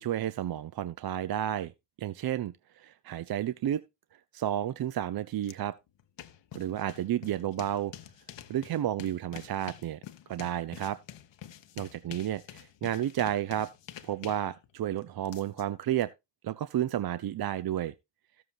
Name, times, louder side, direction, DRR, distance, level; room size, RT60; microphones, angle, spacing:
voice 1, 0.0-1.7 2.0-3.8 4.3-5.7 6.5-7.9 8.5-10.0 10.3-11.0 11.8-13.7 14.0-16.1 16.4-17.9, right 11 dB, 50° right, 0.6 m, -31 dB
sound 1, 5.4-5.5 5.9-16.0, left 11 dB, 60° left, 0.9 m, -48 dB
13.5 x 7.6 x 2.6 m
hypercardioid pair, 40°, 49 cm